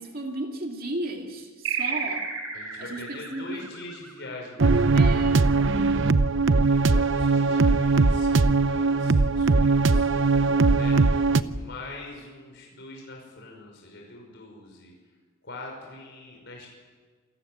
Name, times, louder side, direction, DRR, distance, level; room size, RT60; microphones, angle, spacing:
voice 1, 0.0-2.3 2.8-3.7 4.9-5.9, right 1 dB, 45° right, 2 dB, 2.6 m, -35 dB
sound 1, 1.6-4.7, right 6 dB, 75° right, 4.7 m, -32 dB
voice 2, 2.5-5.1 6.7-10.4 10.7-11.0 11.4-14.9 15.4-16.7, left 2 dB, 55° left, -1 dB, 5.6 m, -43 dB
sound 2, 4.6-11.4, right 3 dB, 60° right, 0.8 m, -20 dB
sound 3, 5.9-11.7, equal, 10° right, 1.5 m, -37 dB
28.0 x 15.0 x 9.5 m, 1.5 s
head